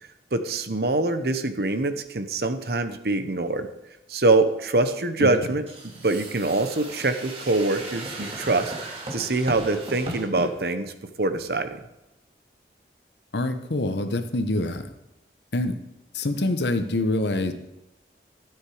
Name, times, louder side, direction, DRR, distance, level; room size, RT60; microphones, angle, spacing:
voice 1, 0.3-3.7 4.1-5.6 6.0-8.7 9.1-10.9 11.2-11.8, right 2 dB, 65° right, 9 dB, 1.0 m, -24 dB
sound 1, 5.7-10.5, right 1 dB, 35° right, 2.3 m, -36 dB
voice 2, 13.3-14.9 15.5-15.8 16.1-17.5, left 2 dB, 80° left, 9 dB, 1.1 m, -25 dB
13.0 x 9.1 x 5.0 m, 0.90 s
head